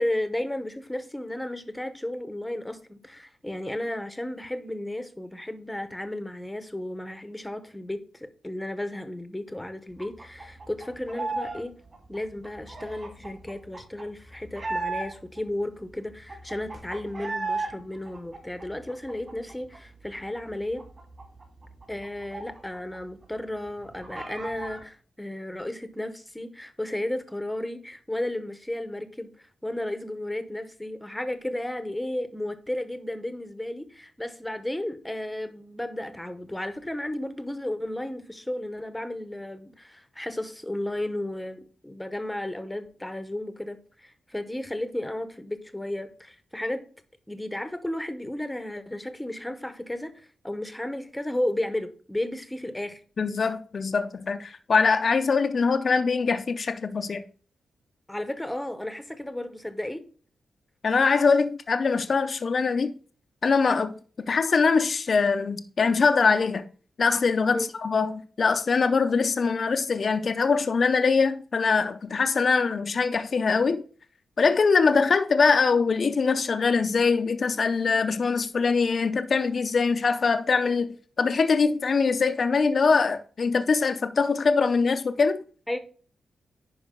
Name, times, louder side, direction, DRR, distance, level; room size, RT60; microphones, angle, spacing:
voice 1, 0.0-11.7 12.1-20.8 21.9-46.8 47.3-50.1 50.4-53.0 58.1-60.0 67.5-67.7 85.7-85.8, left 1 dB, 5° left, 0.8 m, -33 dB
sound 1, 10.0-11.6 11.9-15.4 15.8-15.9 16.1-17.7 18.0-19.8 20.1-20.2 20.5-23.0 23.2-23.3 23.7-24.8, right 3 dB, 30° right, 2.2 m, -35 dB
voice 2, 53.2-57.2 60.8-62.9 63.4-63.9 64.3-66.6 67.0-73.8 74.4-85.4, left 4 dB, 40° left, 0.5 m, -23 dB
10.5 x 4.9 x 3.7 m
wide cardioid pair, 160°, 0 cm